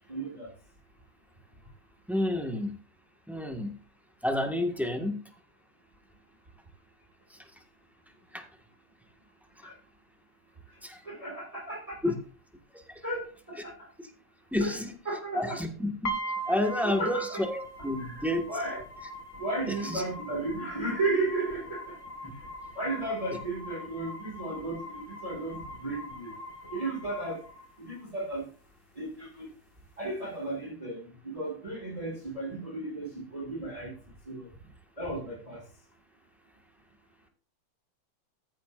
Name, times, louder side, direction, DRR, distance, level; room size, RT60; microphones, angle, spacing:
voice 1, 0.1-0.5 9.6-9.7 11.0-12.0 13.0-13.9 14.6-14.8 15.1-15.6 16.8-17.4 18.1-18.8 19.4-22.0 22.8-26.3 26.7-27.4 27.8-28.5 29.0-29.5 30.0-33.9 34.3-34.5 35.0-35.6, right 2 dB, 20° right, -1 dB, 2.1 m, -34 dB
voice 2, 2.1-2.7 3.3-3.7 4.2-5.1 7.3-7.5 8.3-8.4 9.6-9.7 10.8-11.0 12.0-12.1 12.7-13.0 14.5-14.9 15.3-16.1 16.4-17.6 17.8-18.4 19.8-20.0 22.2-22.3, left 1 dB, ahead, 3 dB, 1.3 m, -30 dB
sound 1, 16.0-28.1, right 1 dB, 45° left, 2.0 m, -41 dB
14.5 x 10.0 x 2.5 m, 0.40 s
omnidirectional pair, 2.1 m